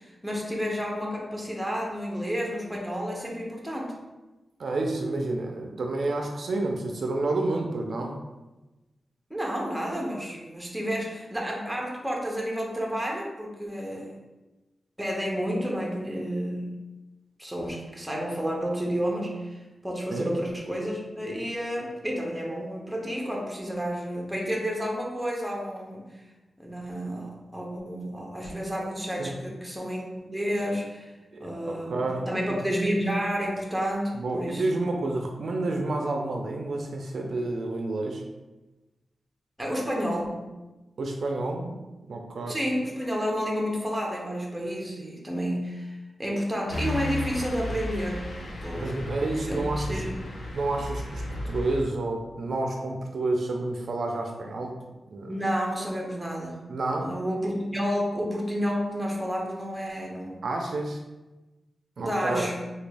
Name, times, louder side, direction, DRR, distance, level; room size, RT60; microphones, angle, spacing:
voice 1, 0.0-4.0 9.3-14.1 15.0-16.7 17.4-26.2 26.6-31.1 31.4-34.7 39.6-40.5 42.5-48.3 48.6-48.9 49.4-50.2 55.3-56.6 57.0-60.4 62.0-62.7, equal, 5° right, -2 dB, 0.6 m, -30 dB
voice 2, 4.6-8.2 20.1-20.3 29.2-29.3 31.3-32.6 34.1-38.2 41.0-41.8 42.1-42.6 48.8-50.0 50.5-54.7 55.1-55.3 56.7-57.1 60.4-61.0 62.0-62.5, right 2 dB, 60° right, 2 dB, 0.3 m, -29 dB
sound 1, 46.7-51.8, left 1 dB, 55° left, 0.5 m, -34 dB
3.3 x 2.2 x 3.3 m, 1.1 s
wide cardioid pair, 145°, 0 cm